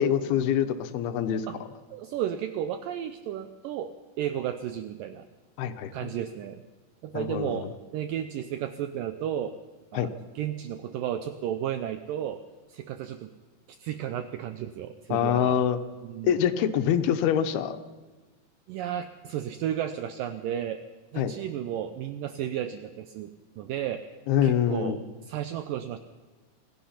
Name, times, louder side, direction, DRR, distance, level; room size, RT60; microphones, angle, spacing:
voice 1, 0.0-1.5 5.6-5.9 7.1-7.6 9.9-10.1 15.1-15.8 16.2-17.8 21.2-21.3 24.3-25.0, left 9 dB, 85° left, 9 dB, 3.0 m, -25 dB
voice 2, 1.9-3.9 4.2-5.3 5.9-6.6 7.0-7.7 7.9-9.5 9.9-12.4 12.7-13.3 13.7-15.6 16.0-16.4 18.7-20.8 21.1-24.0 24.4-26.0, right 10 dB, 75° right, 9 dB, 2.2 m, -33 dB
27.0 x 17.5 x 5.8 m, 1.3 s
omnidirectional pair, 4.4 m